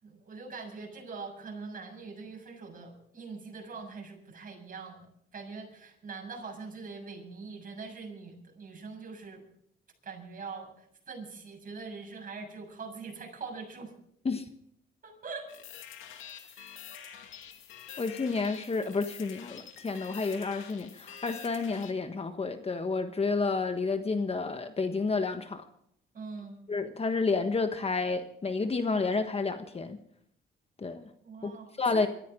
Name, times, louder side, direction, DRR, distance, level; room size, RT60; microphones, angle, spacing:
voice 1, 0.0-9.4 10.0-13.9 15.0-15.5 16.5-16.7 26.1-26.6 31.2-32.1, right 4 dB, 45° right, 1 dB, 7.2 m, -43 dB
sound 1, 15.5-21.9, left 9 dB, 85° left, 2.3 m, -47 dB
voice 2, 18.0-25.6 26.7-30.0 30.8-31.1 31.4-31.5 31.8-32.1, left 4 dB, 30° left, 8 dB, 1.3 m, -30 dB
24.0 x 14.5 x 3.8 m, 0.68 s
cardioid pair, 90°, 20 cm